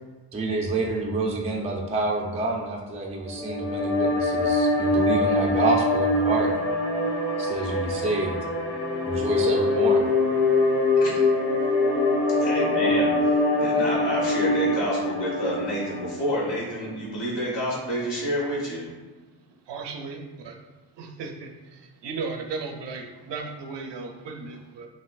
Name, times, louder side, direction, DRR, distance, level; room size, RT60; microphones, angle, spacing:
voice 1, 0.3-6.5 7.4-8.4 9.0-10.0, right 2 dB, 15° right, -1 dB, 0.4 m, -27 dB
sound 1, 3.2-16.5, left 2 dB, 45° left, 1.0 m, -24 dB
voice 2, 12.3-18.9, equal, 70° left, -5 dB, 1.4 m, -29 dB
voice 3, 19.7-20.2 20.5-20.6 21.0-21.3 22.0-23.0 23.3-24.9, right 4 dB, 70° right, 2 dB, 0.7 m, -34 dB
5.5 x 2.9 x 2.4 m, 1.3 s
wide cardioid pair, 130°, 44 cm